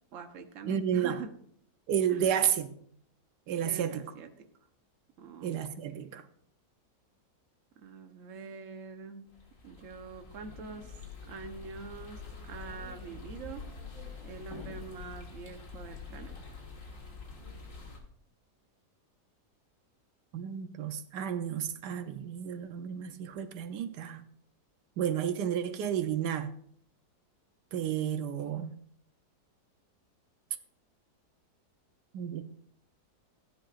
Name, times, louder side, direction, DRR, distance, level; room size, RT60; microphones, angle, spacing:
voice 1, 0.1-1.3 2.1-2.2 3.6-4.5 5.2-5.5 5.8-6.0 7.8-9.3 9.6-11.0 11.3-13.6 14.2-16.4, right 5 dB, 55° right, 1.2 m, -45 dB
voice 2, 0.7-1.2 1.9-2.7 3.5-4.0 5.4-6.2 20.3-24.2 25.0-26.5 27.7-28.7 32.1-32.4, right 9 dB, 85° right, 1.3 m, -31 dB
sound 1, 9.3-18.0, left 4 dB, 50° left, 2.1 m, -46 dB
15.5 x 10.0 x 2.5 m
omnidirectional pair, 1.7 m